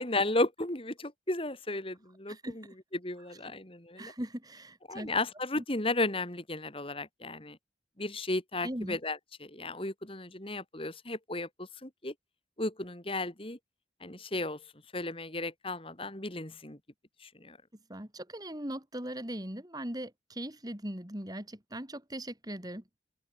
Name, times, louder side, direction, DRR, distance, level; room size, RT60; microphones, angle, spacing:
voice 1, 0.0-2.6 2.9-4.1 4.9-7.6 8.0-12.1 12.6-13.6 14.0-14.6 14.9-16.8 17.2-17.6, left 2 dB, 30° left, 3.5 m, -34 dB
voice 2, 2.3-2.7 4.0-5.1 5.6-5.7 8.6-9.0 17.9-22.8, right 1 dB, 20° right, 3.6 m, -39 dB
open air
head